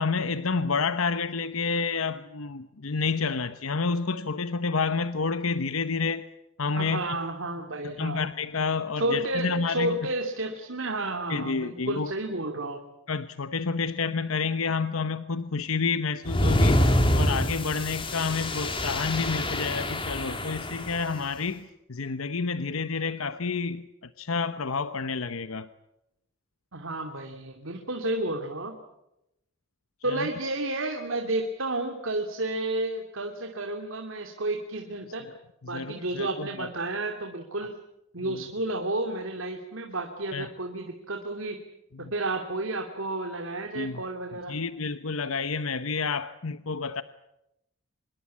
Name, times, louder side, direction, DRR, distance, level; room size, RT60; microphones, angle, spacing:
voice 1, 0.0-6.2 6.6-7.0 7.8-10.0 11.3-12.1 13.1-16.8 17.1-23.9 24.2-25.7 30.1-30.3 35.2-35.3 35.6-36.7 38.2-38.4 40.3-40.5 41.9-42.1 43.7-44.0 44.5-47.0, left 4 dB, 90° left, 12 dB, 1.0 m, -29 dB
voice 2, 6.8-8.2 9.0-12.8 26.7-28.8 30.0-35.3 35.6-37.7 38.1-41.6 42.0-44.6, right 2 dB, 75° right, 4 dB, 2.7 m, -31 dB
sound 1, 16.2-21.2, left 1 dB, 25° left, 3.3 m, -26 dB
26.0 x 22.0 x 8.5 m, 0.85 s
head